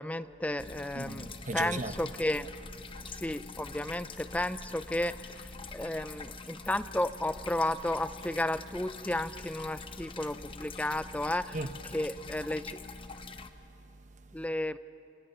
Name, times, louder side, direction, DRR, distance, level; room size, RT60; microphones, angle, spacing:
voice 1, 0.0-2.5 3.0-11.6 11.9-12.8 14.3-14.8, left 1 dB, 5° left, 0.5 m, -33 dB
sound 1, 0.6-13.5, left 3 dB, 25° left, 0.9 m, -45 dB
voice 2, 0.9-2.0 2.9-3.1 5.6-5.7 11.5-11.8 13.1-14.4, right 2 dB, 40° right, 1.0 m, -40 dB
29.0 x 27.5 x 5.7 m
head